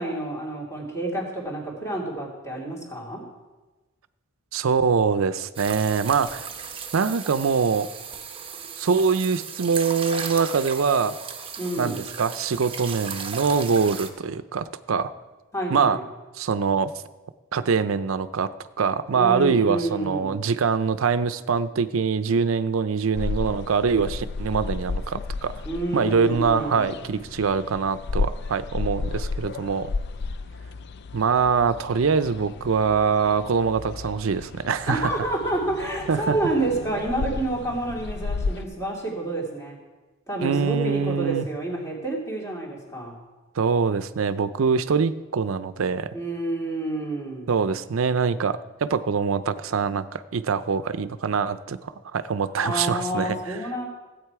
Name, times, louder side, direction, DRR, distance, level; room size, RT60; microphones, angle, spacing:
voice 1, 0.0-3.2 11.6-12.0 15.5-16.0 19.1-20.4 25.6-27.0 34.9-39.8 40.3-43.1 46.1-47.5 52.6-53.9, right 2 dB, 15° left, -3 dB, 2.6 m, -29 dB
voice 2, 4.5-6.5 6.9-7.9 8.8-11.2 11.8-15.1 15.7-16.0 16.4-16.9 17.5-18.5 18.8-25.6 25.9-29.9 31.1-35.1 36.1-36.4 40.4-41.4 43.6-46.1 47.5-53.4, right 5 dB, 75° right, 14 dB, 0.5 m, -24 dB
sound 1, 5.5-14.1, right 6 dB, 25° right, 0.9 m, -36 dB
sound 2, 23.1-38.6, left 4 dB, 55° left, 0.4 m, -33 dB
15.5 x 8.2 x 4.7 m, 1.2 s
head